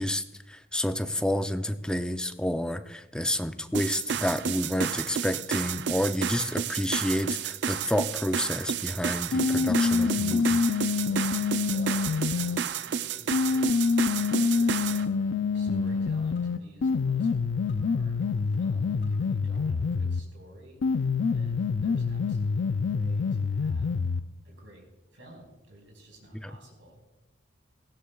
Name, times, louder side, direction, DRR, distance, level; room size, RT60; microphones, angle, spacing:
voice 1, 0.0-10.6 15.7-15.9 26.4-26.5, left 1 dB, 5° left, 9 dB, 0.4 m, -29 dB
sound 1, 3.7-15.0, right 7 dB, 65° right, 0.4 m, -31 dB
sound 2, 9.3-12.6 13.3-20.3 20.8-24.3, left 5 dB, 80° left, 0.4 m, -26 dB
voice 2, 11.0-23.9 24.4-27.0, right 1 dB, 80° right, 0 dB, 4.6 m, -52 dB
sound 3, 14.5-15.3 15.5-16.6 16.9-17.9 18.2-19.3 19.5-19.6, left 1 dB, 55° left, 4.6 m, -56 dB
18.0 x 15.5 x 2.3 m, 1.1 s
head